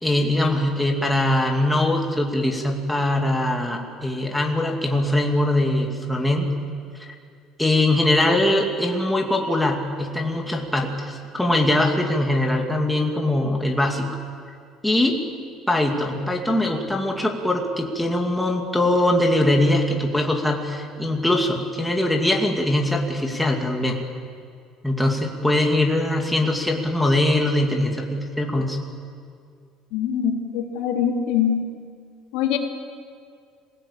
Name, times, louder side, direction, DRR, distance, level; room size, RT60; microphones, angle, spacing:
voice 1, 0.0-6.5 7.0-7.1 7.6-14.1 14.8-15.2 15.7-24.0 24.8-28.8, left 1 dB, 5° left, 0 dB, 2.4 m, -22 dB
voice 2, 29.9-31.6 32.3-32.6, left 8 dB, 85° left, 1 dB, 3.4 m, -23 dB
26.5 x 17.5 x 8.7 m, 2.2 s
cardioid pair, 150°, 0 cm